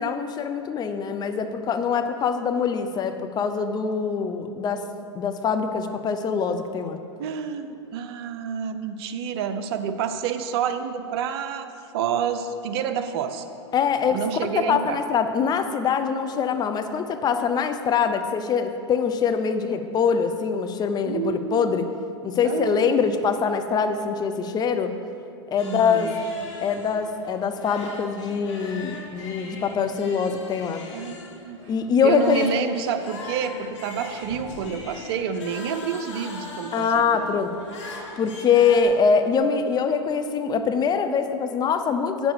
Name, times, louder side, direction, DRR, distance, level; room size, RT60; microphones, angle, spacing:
voice 1, 0.0-4.9 5.1-7.0 13.7-14.2 14.5-21.8 22.2-24.9 25.5-26.1 26.6-30.8 31.7-32.7 36.7-37.5 37.9-42.3, left 6 dB, 25° left, 8 dB, 0.6 m, -23 dB
voice 2, 7.2-13.5 14.1-15.0 21.1-21.8 22.4-22.9 25.6-26.1 30.9-31.6 32.0-37.3, right 7 dB, 55° right, 9 dB, 0.8 m, -29 dB
sound 1, 25.6-38.8, left 3 dB, 65° left, 2.2 m, -40 dB
9.0 x 7.0 x 6.4 m, 2.7 s
hypercardioid pair, 105°, 16 cm